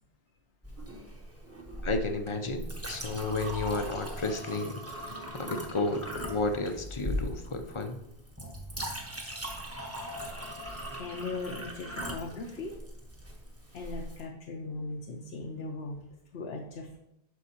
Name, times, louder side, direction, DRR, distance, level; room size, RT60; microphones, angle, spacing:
Chink clink, 0.6-14.2, equal, 15° right, 1.1 m, -39 dB
voice 1, 1.8-5.1 5.3-8.0, left 3 dB, 35° left, 7 dB, 0.5 m, -32 dB
voice 2, 11.0-12.8 13.7-16.0 16.3-17.0, left 3 dB, 75° left, 2 dB, 1.0 m, -38 dB
9.4 x 6.2 x 2.9 m, 0.83 s
omnidirectional pair, 1.1 m